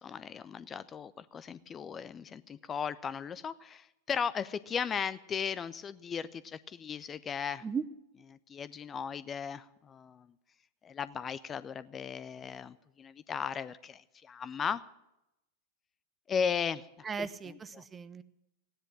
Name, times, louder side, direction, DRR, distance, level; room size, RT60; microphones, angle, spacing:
voice 1, 0.0-7.6 8.5-10.3 10.8-14.8 16.3-16.9 17.7-17.8, left 7 dB, 20° left, 15 dB, 0.5 m, -36 dB
voice 2, 17.0-18.2, right 6 dB, 20° right, 17 dB, 0.7 m, -37 dB
16.5 x 10.0 x 7.4 m, 0.88 s
figure-of-eight pair, 90°, 0 cm